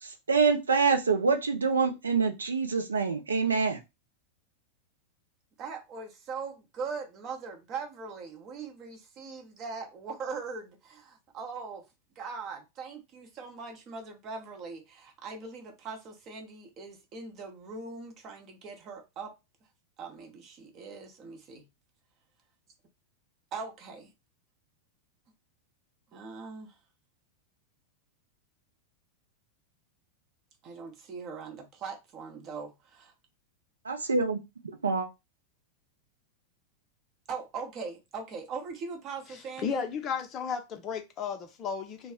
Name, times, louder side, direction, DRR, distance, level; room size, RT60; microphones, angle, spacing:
voice 1, 0.3-3.8 33.9-34.4 34.8-35.1, right 5 dB, 75° right, 0.5 m, -25 dB
voice 2, 5.6-11.8 12.2-19.3 20.0-21.7 23.5-24.1 26.1-26.8 30.6-33.1 37.3-39.9, right 5 dB, 35° right, 0.6 m, -41 dB
voice 3, 39.3-42.1, left 6 dB, 30° left, 0.5 m, -34 dB
2.3 x 2.0 x 3.5 m
figure-of-eight pair, 90°, 0 cm